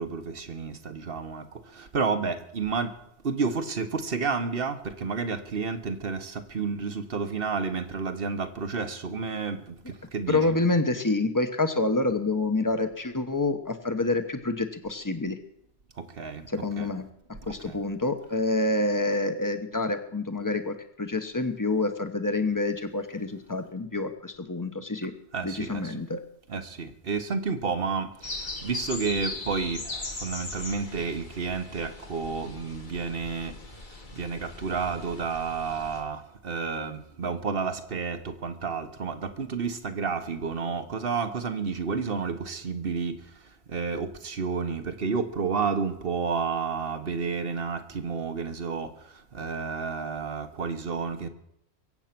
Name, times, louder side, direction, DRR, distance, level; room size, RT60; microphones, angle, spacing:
voice 1, 0.0-2.9 3.2-10.4 16.0-16.5 16.8-16.9 17.4-17.8 25.3-26.0 26.5-33.5 33.9-51.3, right 5 dB, 60° right, 1.4 m, -31 dB
voice 2, 10.3-15.4 16.5-17.1 17.5-25.1 25.4-26.2, left 2 dB, 20° left, 1.1 m, -27 dB
sound 1, 28.2-36.0, left 2 dB, 45° left, 1.8 m, -39 dB
23.0 x 8.1 x 6.0 m
omnidirectional pair, 1.1 m